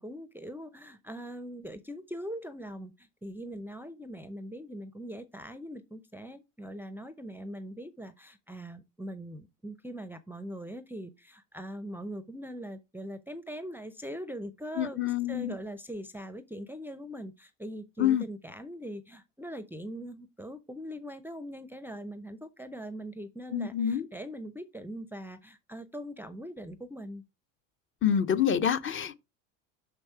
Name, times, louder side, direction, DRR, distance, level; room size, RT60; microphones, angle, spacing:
voice 1, 0.0-15.0 15.3-27.2, equal, 5° right, 0.5 m, -41 dB
voice 2, 14.8-15.5 18.0-18.2 23.5-24.0 28.0-29.1, left 9 dB, 35° left, 0.8 m, -27 dB
5.9 x 5.3 x 4.6 m
hypercardioid pair, 85°, 37 cm